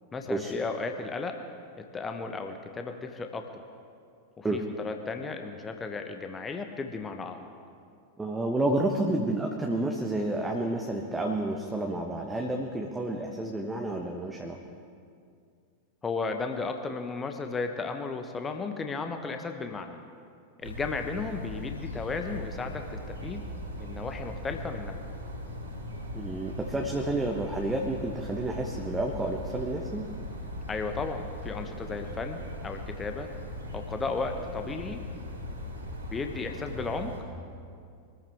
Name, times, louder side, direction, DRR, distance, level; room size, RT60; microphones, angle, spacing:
voice 1, 0.1-1.4 1.8-3.5 4.4-7.5 16.0-20.0 20.6-23.4 23.8-25.0 30.7-33.3 33.7-35.0 36.1-37.2, left 4 dB, 15° left, 5 dB, 1.1 m, -34 dB
voice 2, 8.2-14.6 26.1-30.1, right 2 dB, 10° right, 1 dB, 1.2 m, -30 dB
sound 1, 20.6-37.2, left 1 dB, 75° right, 4.1 m, -39 dB
24.0 x 14.0 x 3.6 m, 2.3 s
figure-of-eight pair, 90°, 0 cm